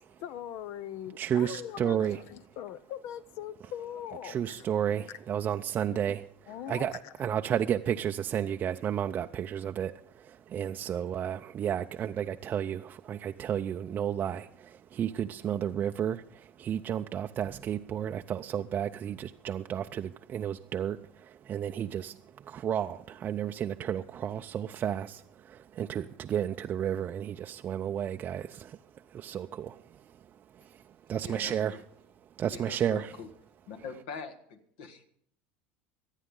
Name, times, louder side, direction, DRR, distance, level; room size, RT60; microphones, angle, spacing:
voice 1, 0.2-4.7 5.9-6.0 6.5-7.1, left 11 dB, 60° left, 0.5 m, -41 dB
voice 2, 1.2-2.6 4.2-31.8 32.3-33.2, right 9 dB, 35° right, 0.5 m, -33 dB
voice 3, 31.2-31.8 32.5-33.3 33.7-35.1, left 5 dB, 75° left, 1.8 m, -43 dB
24.5 x 9.1 x 3.8 m
supercardioid pair, 100°, 5 cm